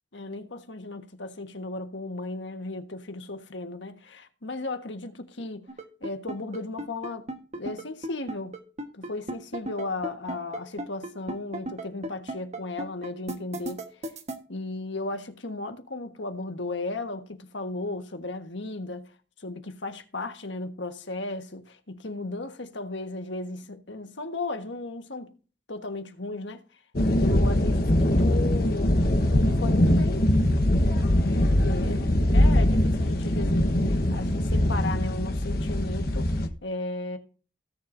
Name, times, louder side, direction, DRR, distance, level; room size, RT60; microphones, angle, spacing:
voice 1, 0.1-5.7 6.0-7.3 7.5-8.6 8.9-13.8 14.5-19.1 19.4-25.3 25.7-26.6 27.2-29.0 29.3-30.3 31.1-36.3 36.6-37.2, left 2 dB, 75° left, 1.4 m, -35 dB
sound 1, 5.7-14.4, right 1 dB, 35° right, 1.3 m, -34 dB
sound 2, 26.9-36.5, left 1 dB, 55° left, 1.2 m, -22 dB
17.5 x 7.2 x 2.6 m
head